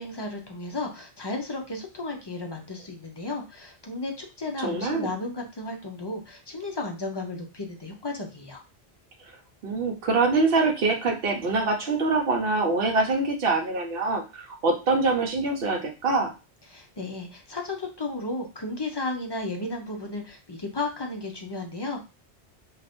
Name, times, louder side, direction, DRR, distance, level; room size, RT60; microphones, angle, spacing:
voice 1, 0.0-8.6 16.7-22.0, left 2 dB, 35° left, 2 dB, 0.4 m, -34 dB
voice 2, 4.6-5.1 9.6-16.3, right 3 dB, 65° right, 4 dB, 0.9 m, -24 dB
2.5 x 2.4 x 3.4 m, 0.30 s
omnidirectional pair, 1.1 m